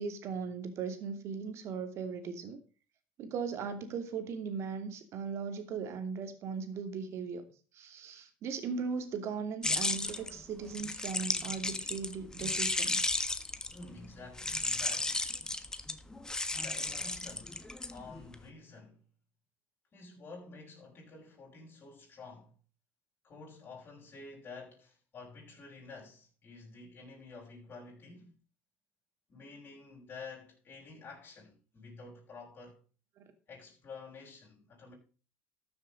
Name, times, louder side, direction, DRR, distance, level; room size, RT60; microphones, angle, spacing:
voice 1, 0.0-2.6 3.2-7.4 7.7-13.2 33.2-33.3, right 5 dB, 55° right, 2.7 m, -38 dB
sound 1, 9.6-13.9 14.4-18.4, left 2 dB, 15° left, 1.5 m, -34 dB
voice 2, 13.7-15.2 16.5-17.6 17.9-19.0 19.9-22.5 23.2-28.3 29.3-32.8 33.5-34.9, left 4 dB, 45° left, 6.4 m, -50 dB
13.5 x 7.3 x 5.2 m
supercardioid pair, 85°, 5 cm